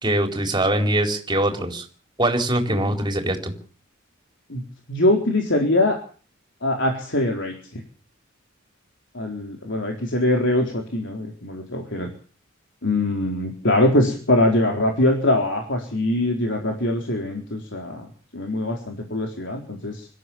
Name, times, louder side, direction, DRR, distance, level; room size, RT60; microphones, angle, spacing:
voice 1, 0.0-1.8 2.2-3.5, right 1 dB, 25° right, 4 dB, 4.4 m, -22 dB
voice 2, 4.9-6.0 6.6-7.8 9.1-12.1 12.8-18.1 18.3-20.1, left 1 dB, 65° left, 2 dB, 4.2 m, -23 dB
25.5 x 14.0 x 7.2 m, 0.43 s
head